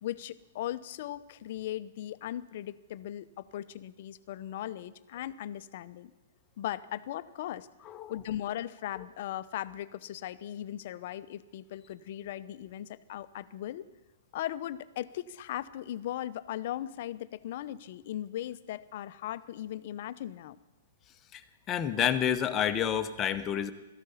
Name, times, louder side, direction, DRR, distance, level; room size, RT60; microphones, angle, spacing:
voice 1, 0.0-6.1 6.6-7.7 8.1-13.9 14.3-20.6, left 12 dB, 55° left, 14 dB, 0.7 m, -38 dB
voice 2, 21.7-23.7, left 9 dB, 20° left, 7 dB, 1.0 m, -29 dB
16.5 x 13.5 x 5.7 m, 1.1 s
hypercardioid pair, 145°, 0 cm